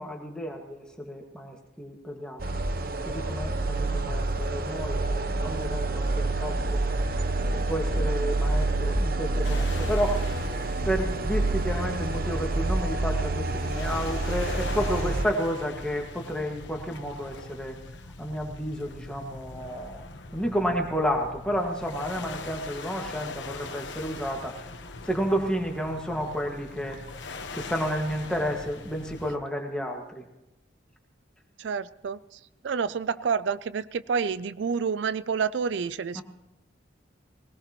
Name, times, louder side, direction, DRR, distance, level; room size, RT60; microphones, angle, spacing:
voice 1, 0.0-2.6 3.1-6.8 7.4-10.3 10.9-17.8 18.2-20.1 20.3-24.6 25.1-27.0 27.3-30.2 36.2-36.3, equal, 5° left, 1 dB, 1.8 m, -31 dB
sound 1, 2.4-15.3, right 2 dB, 50° right, 0.8 m, -28 dB
sound 2, 9.4-29.4, left 3 dB, 75° left, 1.2 m, -41 dB
voice 2, 31.6-36.2, right 6 dB, 75° right, 16 dB, 0.4 m, -29 dB
20.0 x 18.5 x 3.1 m, 0.96 s
head